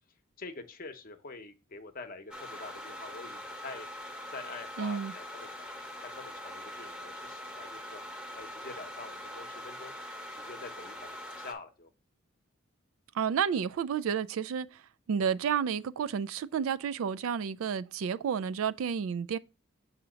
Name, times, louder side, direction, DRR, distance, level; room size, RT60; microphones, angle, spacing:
voice 1, 0.4-3.9 4.3-8.0 8.3-9.9 10.3-11.9, left 3 dB, 45° left, 0.8 m, -46 dB
sound 1, 2.3-11.5, left 1 dB, 5° right, 0.9 m, -43 dB
voice 2, 4.8-5.1 13.1-14.8 15.1-19.4, right 7 dB, 70° right, 0.3 m, -31 dB
6.8 x 2.8 x 5.0 m
head